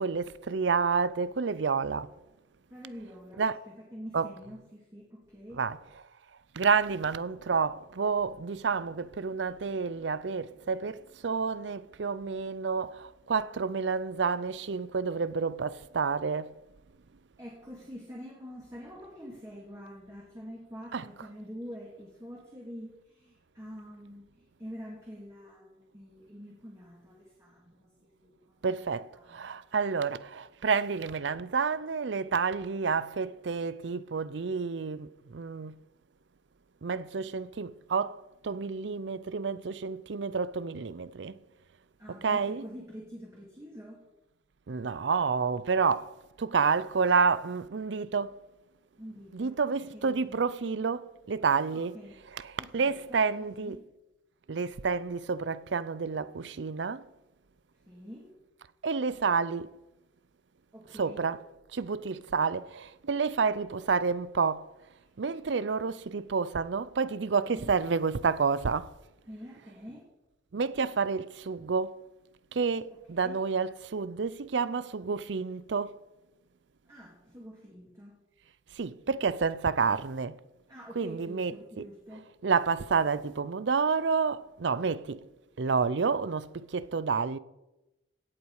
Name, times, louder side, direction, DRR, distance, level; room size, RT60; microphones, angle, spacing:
voice 1, 0.0-2.1 3.4-3.6 4.1-4.3 5.5-5.8 6.5-16.5 20.9-21.0 28.6-35.8 36.8-41.4 42.2-42.6 44.7-46.1 46.4-48.4 49.3-52.0 52.3-53.8 54.5-57.0 58.8-59.7 60.9-61.4 61.7-64.7 65.2-68.9 70.5-72.0 72.5-76.0 78.7-80.4 81.0-81.9 82.4-85.3 85.6-87.4, right 5 dB, 75° right, 0.5 m, -29 dB
voice 2, 2.7-5.6 17.4-27.8 28.2-28.8 29.3-29.6 42.0-44.0 49.0-50.4 51.7-52.2 52.6-53.7 57.9-58.3 60.7-61.3 67.5-67.6 69.3-70.0 73.1-73.4 76.9-78.2 80.7-82.2, equal, 15° right, 2.4 m, -46 dB
17.0 x 8.3 x 4.8 m
head